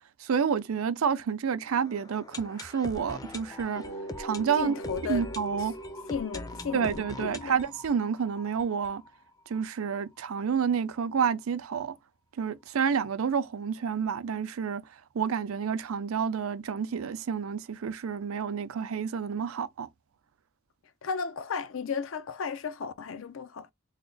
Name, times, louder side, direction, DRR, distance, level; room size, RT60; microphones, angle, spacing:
voice 1, 0.2-3.8 4.2-4.7 5.1-5.7 6.7-9.0 9.5-12.0 12.4-14.8 15.1-19.9, right 6 dB, 85° right, 0.5 m, -29 dB
sound 1, 1.8-9.6 9.9-10.0 10.2-10.3 10.8-10.9, left 2 dB, 15° left, 0.5 m, -43 dB
sound 2, 3.7-7.3, right 1 dB, 85° left, 1.5 m, -42 dB
voice 2, 4.5-5.3 5.6-5.7 6.1-7.5 21.0-23.7, left 6 dB, 70° left, 0.5 m, -34 dB
3.5 x 2.1 x 3.7 m
head